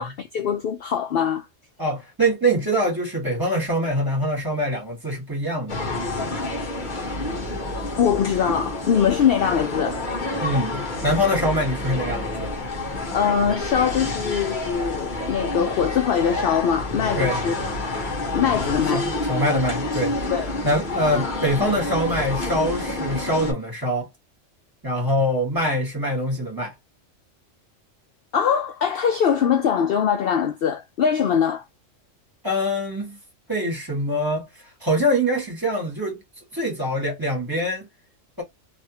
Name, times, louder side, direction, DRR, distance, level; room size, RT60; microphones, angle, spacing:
voice 1, 0.0-1.5 8.0-10.0 12.9-17.7 18.3-19.1 20.3-20.5 28.3-31.6, left 7 dB, 60° left, 0.7 m, -22 dB
voice 2, 1.8-5.8 10.4-12.5 17.2-17.4 18.9-20.2 20.6-24.1 24.8-26.7 32.4-33.2 33.5-36.2 36.5-37.9, equal, 15° right, 1.8 m, -24 dB
sound 1, 5.7-23.5, left 2 dB, 40° left, 1.2 m, -28 dB
3.3 x 2.7 x 2.8 m
omnidirectional pair, 1.3 m